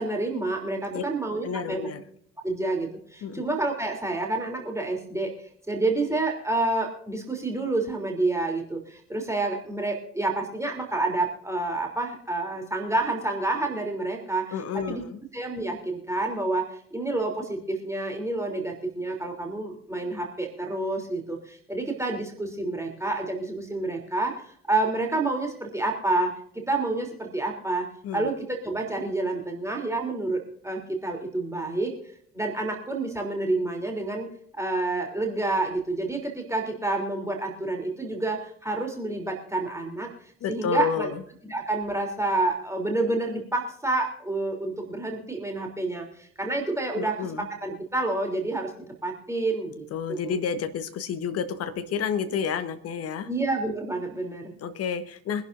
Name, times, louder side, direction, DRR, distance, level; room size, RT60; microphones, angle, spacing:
voice 1, 0.0-1.9 2.4-15.0 15.3-27.9 28.1-31.9 32.3-34.3 34.5-40.1 40.5-41.1 41.4-47.3 47.6-50.4 53.3-54.5, right 2 dB, 10° right, 1 dB, 3.2 m, -29 dB
voice 2, 1.4-2.0 3.2-3.4 14.5-15.2 28.0-28.3 40.4-41.2 46.9-47.5 49.9-53.3 54.6-55.5, left 6 dB, 45° left, 10 dB, 1.4 m, -30 dB
24.5 x 11.5 x 2.6 m, 0.64 s
figure-of-eight pair, 50°, 33 cm